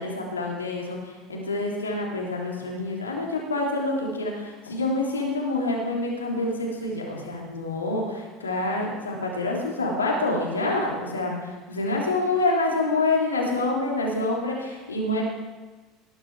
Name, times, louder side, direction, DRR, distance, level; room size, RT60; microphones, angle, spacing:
voice 1, 0.0-15.2, left 2 dB, 80° left, -1 dB, 3.2 m, -27 dB
19.0 x 11.0 x 4.8 m, 1.2 s
figure-of-eight pair, 70°, 0 cm